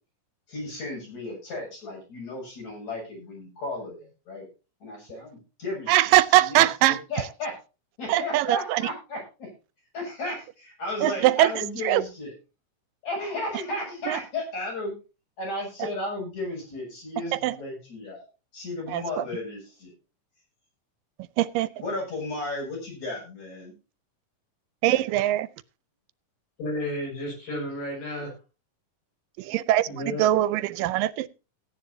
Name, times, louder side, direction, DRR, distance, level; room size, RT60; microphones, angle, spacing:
voice 1, 0.5-4.5 4.8-6.1 6.4-6.7 7.1-7.6 8.0-9.5 9.9-12.3 13.0-15.0 15.4-18.3 18.5-19.9 21.8-23.7, left 2 dB, 55° left, 8.4 m, -34 dB
voice 2, 5.9-7.0 8.1-8.8 11.0-11.5 11.8-12.0 14.1-14.2 17.3-17.5 18.9-19.2 21.4-21.7 24.8-25.5 29.4-31.3, right 15 dB, 85° right, 2.4 m, -22 dB
voice 3, 26.6-28.3 29.9-30.2, left 1 dB, 85° left, 8.3 m, -32 dB
17.5 x 10.5 x 2.7 m
omnidirectional pair, 3.8 m